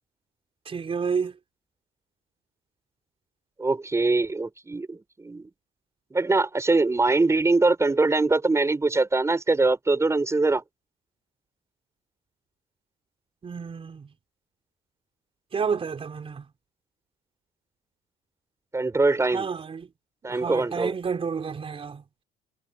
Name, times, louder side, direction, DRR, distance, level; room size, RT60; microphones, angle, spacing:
voice 1, 0.7-1.3 13.4-14.1 15.5-16.4 19.3-19.9 20.3-22.0, right 6 dB, 35° right, 4.0 m, -30 dB
voice 2, 3.6-5.5 6.1-10.6 18.7-19.5 20.2-20.9, right 3 dB, 15° right, 5.1 m, -23 dB
cardioid pair, 110°, 17 cm